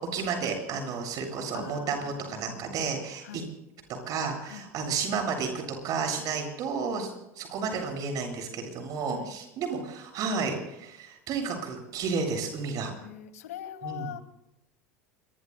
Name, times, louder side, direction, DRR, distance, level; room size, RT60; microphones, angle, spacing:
voice 1, 0.1-3.4 4.1-7.1 7.4-12.9 13.8-14.1, right 5 dB, 45° right, 3 dB, 7.4 m, -32 dB
voice 2, 1.5-2.8 3.2-3.5 4.5-4.7 9.1-9.3 13.0-14.2, left 10 dB, 75° left, 7 dB, 2.3 m, -42 dB
29.0 x 21.5 x 2.2 m, 0.84 s
hypercardioid pair, 80°, 8 cm